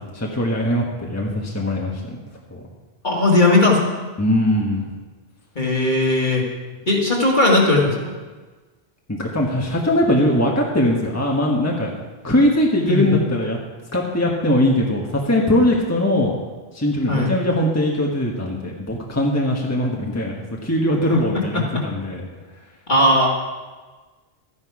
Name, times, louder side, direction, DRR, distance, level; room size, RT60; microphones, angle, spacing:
voice 1, 0.1-2.0 2.5-2.6 4.2-4.9 9.1-11.9 12.2-13.6 13.9-16.3 16.7-20.4 20.6-22.3, left 1 dB, 15° left, -1 dB, 1.3 m, -20 dB
voice 2, 3.0-3.8 5.6-6.4 6.9-8.1 12.9-13.2 17.1-17.3 21.5-21.8 22.9-23.3, left 2 dB, 50° left, -2 dB, 2.3 m, -17 dB
13.0 x 9.8 x 4.8 m, 1.3 s
omnidirectional pair, 1.1 m